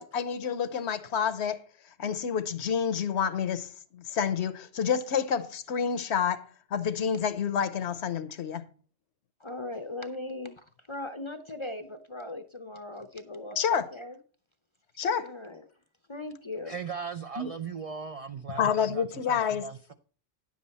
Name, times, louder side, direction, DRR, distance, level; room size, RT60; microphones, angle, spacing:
voice 1, 0.0-1.6 2.0-8.6 13.6-13.9 15.0-15.3 17.4-17.5 18.5-19.7, left 7 dB, 75° left, 1.1 m, -29 dB
voice 2, 9.4-14.2 15.2-15.6 16.1-16.7, left 2 dB, 35° left, 0.6 m, -39 dB
voice 3, 16.7-19.9, right 6 dB, 50° right, 0.4 m, -38 dB
10.5 x 7.4 x 4.2 m
omnidirectional pair, 1.2 m